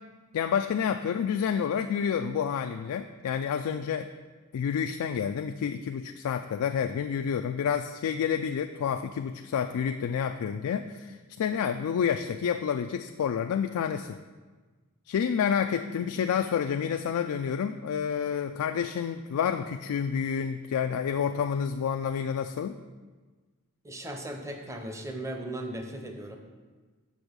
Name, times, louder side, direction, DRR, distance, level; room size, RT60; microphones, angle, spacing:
voice 1, 0.3-4.1 4.5-14.2 15.1-22.8, left 7 dB, 75° left, 7 dB, 0.3 m, -29 dB
voice 2, 23.8-26.4, right 1 dB, 15° right, 4 dB, 0.7 m, -37 dB
6.3 x 6.2 x 5.1 m, 1.3 s
head